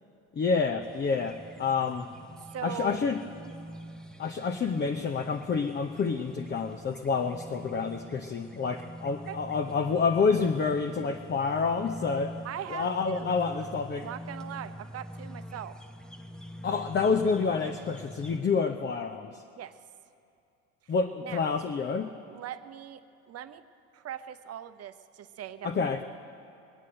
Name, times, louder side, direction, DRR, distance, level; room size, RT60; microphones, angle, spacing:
voice 1, 0.3-2.1 2.6-3.2 4.2-12.3 12.7-14.1 16.6-19.4 20.9-22.1 25.6-26.0, left 5 dB, 30° left, 5 dB, 0.8 m, -28 dB
sound 1, 0.8-18.4, right 1 dB, ahead, 1.0 m, -45 dB
voice 2, 2.4-3.0 4.2-4.3 9.3-9.4 12.4-13.3 14.0-15.7 19.6-19.8 20.8-20.9 21.2-21.5 22.3-23.6 23.9-26.0, right 10 dB, 40° right, 11 dB, 0.8 m, -40 dB
22.0 x 8.3 x 7.8 m, 2.6 s
hypercardioid pair, 80°, 38 cm